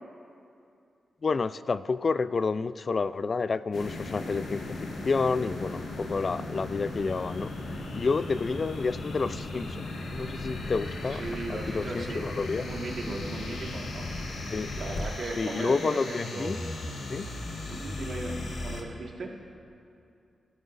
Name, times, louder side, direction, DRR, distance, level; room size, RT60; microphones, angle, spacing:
voice 1, 1.2-4.6 5.0-7.5 7.9-9.8 10.1-11.2 11.5-12.7 14.5-14.7 15.4-16.6 17.1-17.3, left 4 dB, 50° left, 15 dB, 0.3 m, -29 dB
sound 1, 3.7-18.8, left 2 dB, 85° left, 1.6 m, -36 dB
voice 2, 11.1-12.3 12.6-14.1 14.8-16.8 17.7-18.4 18.6-19.3, right 2 dB, 75° right, 0 dB, 1.6 m, -37 dB
19.0 x 13.5 x 2.5 m, 2.6 s
cardioid pair, 65°, 0 cm